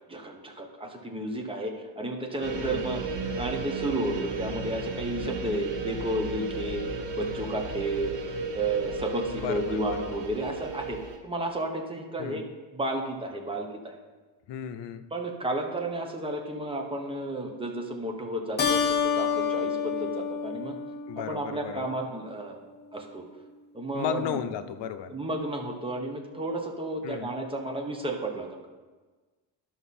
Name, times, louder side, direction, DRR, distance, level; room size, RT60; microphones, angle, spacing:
voice 1, 0.1-3.0 3.3-8.1 8.5-11.0 11.2-12.4 12.7-14.0 15.1-20.7 21.2-22.6 22.9-23.3 23.7-24.4 25.1-28.7, right 1 dB, 10° right, 1 dB, 1.0 m, -32 dB
sound 1, 2.4-11.2, right 3 dB, 75° right, 1.5 m, -34 dB
voice 2, 2.5-2.9 9.3-10.2 12.2-12.5 14.5-15.1 21.1-21.9 23.9-25.1 27.0-27.3, left 9 dB, 75° left, 10 dB, 0.7 m, -35 dB
Keyboard (musical), 18.6-21.5, left 6 dB, 25° left, 0.6 m, -28 dB
11.5 x 5.9 x 4.2 m, 1.3 s
cardioid pair, 155°, 43 cm